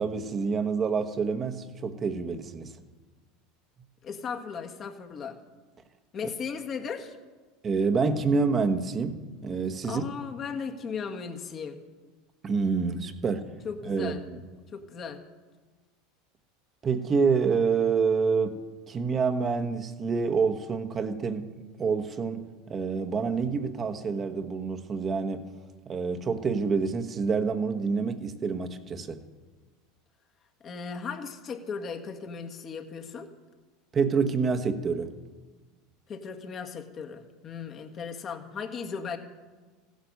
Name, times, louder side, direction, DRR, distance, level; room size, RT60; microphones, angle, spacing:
voice 1, 0.0-2.8 6.2-6.3 7.6-10.0 12.4-13.5 13.8-14.4 16.8-18.6 18.9-25.5 25.9-29.2 33.9-35.1, right 5 dB, 30° right, 7 dB, 1.2 m, -27 dB
voice 2, 4.0-5.4 6.1-7.2 9.8-11.8 13.6-14.2 14.7-15.2 30.6-33.3 36.1-39.2, left 6 dB, 40° left, 4 dB, 1.7 m, -36 dB
15.5 x 10.5 x 6.6 m, 1.3 s
hypercardioid pair, 100°, 0 cm